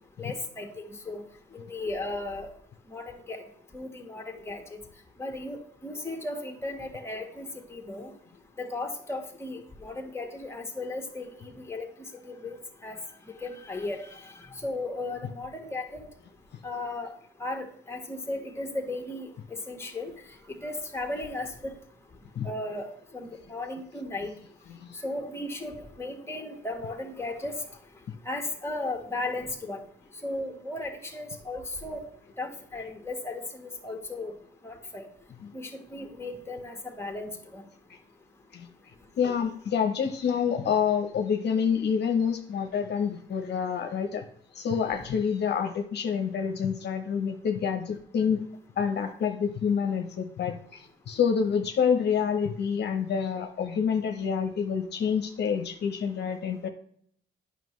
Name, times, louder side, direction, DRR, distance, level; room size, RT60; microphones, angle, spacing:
voice 1, 0.2-1.2 1.5-2.5 2.9-3.4 3.7-4.8 5.2-8.1 8.6-11.9 12.2-13.0 13.4-16.0 16.6-17.1 17.4-19.3 19.7-20.2 20.5-21.7 22.4-24.3 24.9-27.6 28.2-29.8 30.2-32.0 32.4-34.3 34.6-35.1 35.5-37.6, left 2 dB, 15° left, 3 dB, 1.4 m, -36 dB
voice 2, 39.2-44.2 44.5-48.4 48.8-56.7, left 7 dB, 60° left, 5 dB, 0.9 m, -27 dB
9.2 x 5.8 x 3.1 m, 0.66 s
cardioid pair, 90°, 20 cm